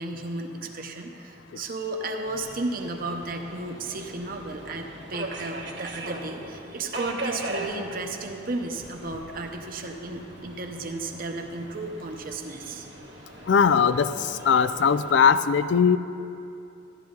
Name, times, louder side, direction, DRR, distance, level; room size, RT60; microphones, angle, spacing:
voice 1, 0.0-12.9, right 2 dB, 50° right, 4 dB, 1.0 m, -34 dB
Subway metro underground, 2.2-15.3, right 2 dB, 70° right, 1.4 m, -40 dB
voice 2, 13.5-14.1 14.5-16.0, left 6 dB, 70° left, 13 dB, 0.4 m, -19 dB
15.0 x 11.0 x 3.9 m, 2.7 s
head